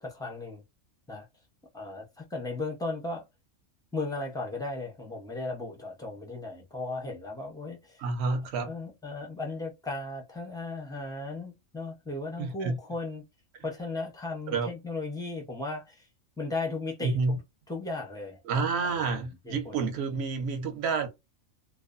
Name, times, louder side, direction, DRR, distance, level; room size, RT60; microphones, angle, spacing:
voice 1, 0.0-0.6 1.1-1.3 1.7-3.2 3.9-8.0 8.7-13.2 13.6-16.1 16.4-17.4 17.7-18.6 18.9-19.8, left 3 dB, 5° left, 0.3 m, -36 dB
voice 2, 8.0-8.7 12.4-12.8 14.5-14.7 17.0-17.4 18.4-21.1, right 4 dB, 60° right, 0.9 m, -29 dB
2.5 x 2.2 x 2.4 m
omnidirectional pair, 1.4 m